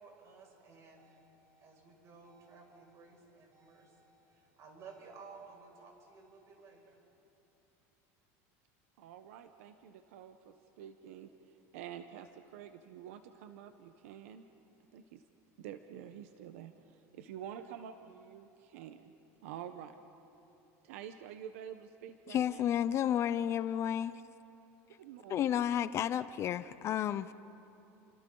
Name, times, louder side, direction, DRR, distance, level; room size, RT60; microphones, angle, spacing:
voice 1, 0.0-7.0, right 4 dB, 45° right, 0 dB, 6.1 m, -55 dB
voice 2, 9.0-11.3 11.7-14.4 14.9-15.2 15.6-19.1 19.4-20.0 20.8-22.8 25.0-25.7, right 9 dB, 85° right, 8 dB, 0.9 m, -48 dB
voice 3, 22.3-24.1 25.3-27.3, left 10 dB, 40° left, 14 dB, 0.5 m, -31 dB
30.0 x 26.0 x 3.9 m, 2.9 s
supercardioid pair, 135°, 7 cm